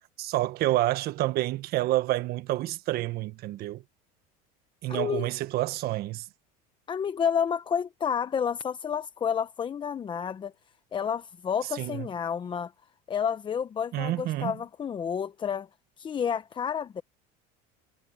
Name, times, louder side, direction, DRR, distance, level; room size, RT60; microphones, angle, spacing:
voice 1, 0.2-3.8 4.8-6.3 11.7-12.1 13.9-14.6, right 16 dB, 55° right, 1.4 m, -28 dB
voice 2, 4.9-5.3 6.9-10.5 10.9-12.7 13.1-15.7 16.0-17.0, left 7 dB, 25° left, 0.8 m, -30 dB
supercardioid pair, 125°, 20 cm